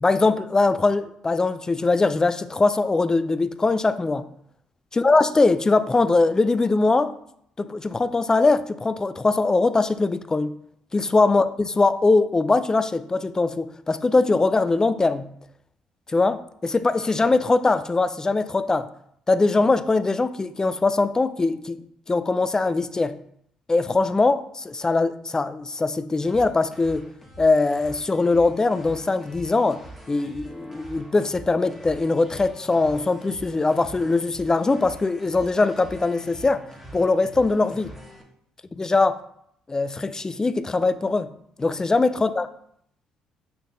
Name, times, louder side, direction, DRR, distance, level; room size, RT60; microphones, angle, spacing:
voice 1, 0.0-4.2 4.9-7.1 7.6-10.5 10.9-15.3 16.1-18.9 19.3-23.2 23.7-27.1 27.4-29.8 30.1-36.6 36.9-37.9 38.8-39.2 39.7-41.3 41.6-42.5, left 3 dB, 25° left, 12 dB, 0.4 m, -21 dB
sound 1, 26.2-38.2, right 1 dB, 5° right, 1.4 m, -44 dB
5.6 x 3.5 x 2.7 m, 0.69 s
hypercardioid pair, 50°, 3 cm